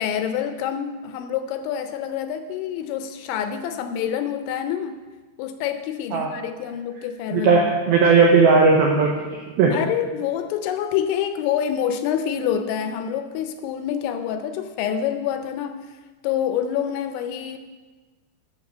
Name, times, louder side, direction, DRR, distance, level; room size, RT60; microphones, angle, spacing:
voice 1, 0.0-5.0 5.4-7.6 9.7-15.9 16.2-17.6, left 9 dB, 80° left, 8 dB, 2.8 m, -27 dB
voice 2, 7.3-9.3 9.6-9.7, right 4 dB, 90° right, 0 dB, 2.1 m, -16 dB
12.0 x 6.1 x 6.6 m, 1.3 s
omnidirectional pair, 5.6 m